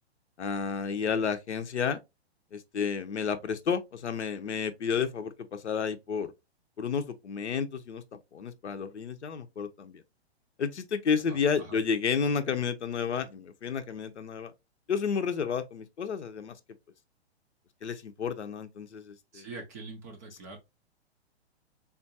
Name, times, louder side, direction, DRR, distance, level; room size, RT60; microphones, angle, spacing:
voice 1, 0.4-2.0 2.5-6.3 6.8-10.0 10.6-14.5 14.9-16.6 17.8-19.5, left 6 dB, 85° left, 0.6 m, -31 dB
voice 2, 11.3-11.8 19.3-20.6, right 3 dB, 15° right, 0.3 m, -44 dB
3.6 x 2.3 x 2.6 m
figure-of-eight pair, 120°, 33 cm